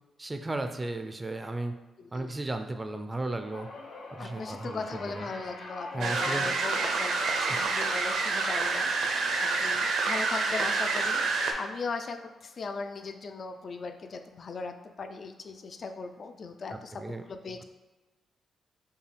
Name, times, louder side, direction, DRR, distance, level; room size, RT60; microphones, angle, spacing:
voice 1, 0.2-1.7 2.1-3.7 4.1-5.3 5.9-6.5 7.5-7.7 9.3-9.4 16.7-17.2, right 2 dB, 20° right, 6 dB, 0.3 m, -35 dB
voice 2, 2.0-2.3 4.2-8.9 9.4-11.3 11.6-17.6, left 4 dB, 50° left, 7 dB, 0.4 m, -38 dB
sound 1, 3.4-13.9 14.2-14.6 15.7-15.8, left 2 dB, 80° left, 0.7 m, -46 dB
sound 2, 6.0-11.5, right 4 dB, 85° right, 0.5 m, -28 dB
5.4 x 2.2 x 3.3 m, 1.1 s
cardioid pair, 95°, 0 cm